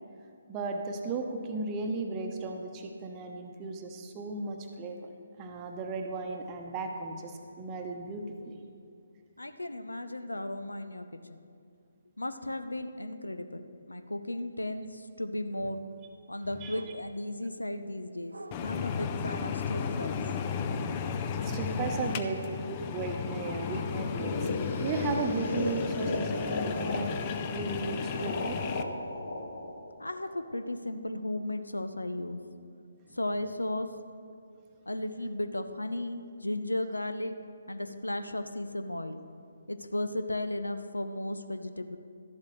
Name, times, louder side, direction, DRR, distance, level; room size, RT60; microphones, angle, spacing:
voice 1, 0.5-5.1 5.4-8.5 16.6-16.7 20.1-20.2 20.8-24.5 24.8-27.3 27.5-28.6, right 3 dB, 20° right, 3 dB, 0.9 m, -35 dB
voice 2, 9.4-11.4 12.2-15.8 16.3-20.2 30.0-32.4 33.1-33.9 34.9-37.3 37.7-39.2 39.7-42.0, left 1 dB, 80° left, 9 dB, 0.6 m, -35 dB
sound 1, 16.7-17.3 18.3-18.7 21.7-22.4 23.3-24.5 25.6-26.0 26.4-27.5 27.8-28.3, right 2 dB, 70° right, 0.6 m, -46 dB
sound 2, 18.5-28.8, left 6 dB, 25° left, 0.5 m, -34 dB
sound 3, 24.0-30.9, left 2 dB, 60° left, 1.5 m, -35 dB
13.0 x 11.5 x 3.2 m, 2.4 s
figure-of-eight pair, 140°, 0 cm